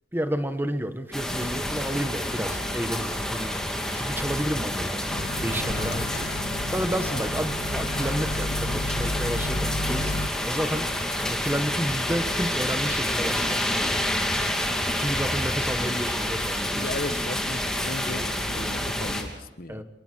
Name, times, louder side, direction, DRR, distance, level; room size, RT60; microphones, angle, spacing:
voice 1, 0.1-6.1 6.7-10.9 11.2-14.1 15.0-16.9 19.7-19.8, equal, 15° right, 8 dB, 1.5 m, -31 dB
sound 1, 1.1-19.2, left 1 dB, 5° left, 3.1 m, -28 dB
Microwave oven, 5.1-10.3, left 2 dB, 85° left, 1.0 m, -32 dB
voice 2, 5.8-6.1 16.7-19.8, left 2 dB, 55° left, 11 dB, 1.3 m, -37 dB
28.0 x 22.5 x 4.7 m, 1.0 s
head